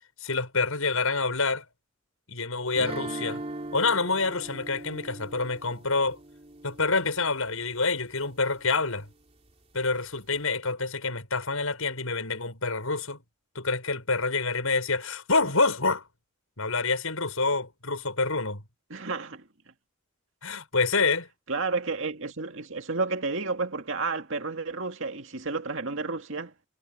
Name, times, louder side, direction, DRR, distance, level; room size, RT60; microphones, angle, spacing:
voice 1, 0.2-1.6 2.3-3.4 3.7-6.2 6.6-9.1 9.7-13.2 13.6-16.0 16.6-18.6 20.4-21.3, left 3 dB, 75° left, 7.1 m, -27 dB
sound 1, 2.8-7.7, right 2 dB, 30° right, 3.4 m, -40 dB
voice 2, 18.9-19.5 21.5-26.5, right 3 dB, 60° right, 2.4 m, -31 dB
head